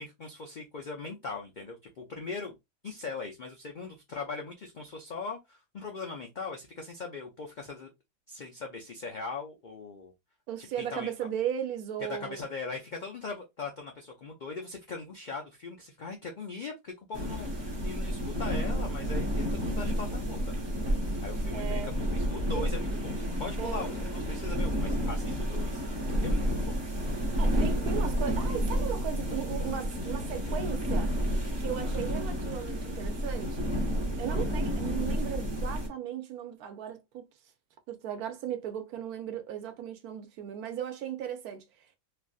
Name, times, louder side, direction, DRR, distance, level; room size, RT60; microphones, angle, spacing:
voice 1, 0.0-2.6 2.8-7.9 8.3-10.1 10.6-11.1 12.1-19.3 19.5-20.7 21.2-25.8 26.2-26.8 31.8-32.1 34.3-34.5, left 4 dB, 90° left, 0.4 m, -40 dB
voice 2, 10.5-12.4 21.5-21.9 22.5-22.7 23.6-23.9 27.4-31.1 31.6-33.7 34.1-37.3 37.9-41.6, right 9 dB, 85° right, 1.2 m, -36 dB
sound 1, 17.1-35.9, equal, 25° right, 0.6 m, -30 dB
3.2 x 2.5 x 2.3 m
omnidirectional pair, 1.5 m